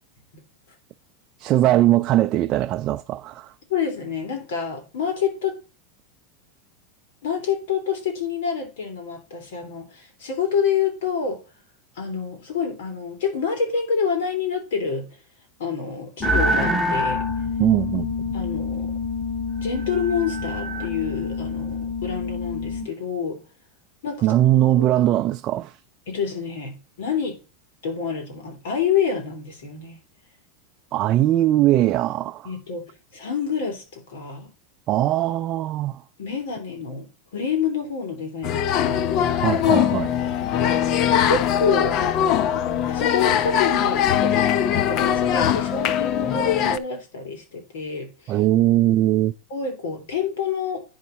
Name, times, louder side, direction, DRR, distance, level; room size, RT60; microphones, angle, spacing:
voice 1, 1.4-3.5 17.6-18.3 24.2-25.8 30.9-32.5 34.9-36.0 39.4-40.1 48.3-49.3, right 14 dB, 40° right, 0.4 m, -20 dB
voice 2, 3.7-5.6 7.2-11.4 12.0-15.1 15.6-17.2 18.3-18.9 19.6-23.4 24.0-24.4 24.9-25.0 26.1-27.4 27.8-30.0 32.4-34.5 36.2-39.1 40.6-48.4 49.5-50.8, left 6 dB, 75° left, 3.3 m, -27 dB
sound 1, 16.2-22.8, left 2 dB, 15° left, 2.4 m, -26 dB
sound 2, 38.4-46.8, left 10 dB, 45° left, 0.6 m, -21 dB
9.5 x 5.5 x 4.2 m
supercardioid pair, 130°, 0 cm